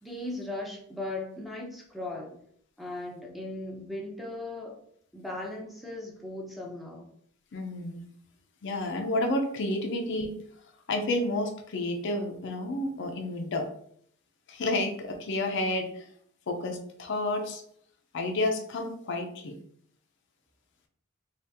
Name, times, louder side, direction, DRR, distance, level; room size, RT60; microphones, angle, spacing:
voice 1, 0.0-2.3 2.8-4.8 5.1-7.1, left 2 dB, ahead, -1 dB, 0.6 m, -38 dB
voice 2, 7.5-8.1 8.6-10.4 10.9-13.7 14.5-16.1 16.5-17.6 18.1-19.6, left 1 dB, 60° left, 5 dB, 0.5 m, -30 dB
2.8 x 2.4 x 3.4 m, 0.64 s
head